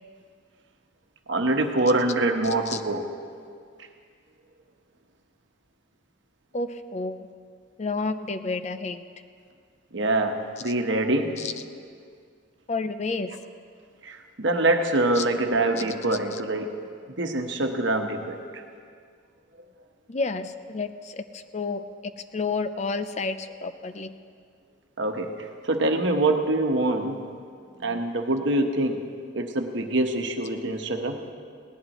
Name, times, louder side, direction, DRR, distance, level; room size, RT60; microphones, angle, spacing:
voice 1, 1.3-3.0 9.9-11.4 14.0-16.7 17.2-18.6 25.0-27.2 27.8-29.1 29.3-31.3, right 2 dB, 65° right, 4 dB, 1.1 m, -25 dB
voice 2, 6.5-7.3 7.8-9.0 11.4-11.5 12.7-13.3 15.2-15.3 16.3-16.4 20.1-21.8 22.3-24.1, left 3 dB, 35° left, 9 dB, 0.5 m, -30 dB
19.0 x 18.0 x 3.0 m, 2.1 s
head